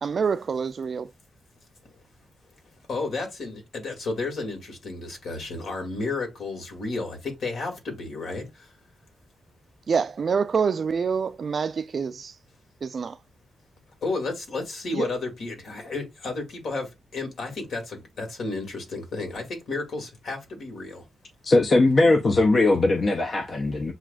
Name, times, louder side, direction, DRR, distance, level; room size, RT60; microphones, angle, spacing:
voice 1, 0.0-1.1 9.9-12.3 12.8-13.2 14.9-15.1, right 6 dB, 50° right, 0.4 m, -26 dB
voice 2, 2.9-8.7 14.0-21.0, left 3 dB, 70° left, 1.8 m, -32 dB
voice 3, 21.4-23.9, left 2 dB, 40° left, 0.6 m, -20 dB
7.2 x 2.5 x 2.3 m
cardioid pair, 100°, 0 cm